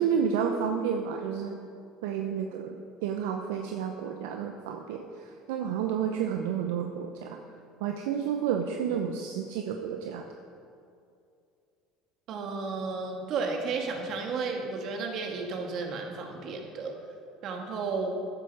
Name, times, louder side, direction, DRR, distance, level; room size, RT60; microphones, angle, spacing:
voice 1, 0.0-1.6 2.0-2.8 3.0-7.4 7.8-10.3, right 7 dB, 75° right, 4 dB, 0.7 m, -30 dB
voice 2, 12.3-16.9 17.4-18.2, right 4 dB, 55° right, 2 dB, 2.2 m, -33 dB
13.5 x 10.5 x 4.8 m, 2.5 s
hypercardioid pair, 75°, 0 cm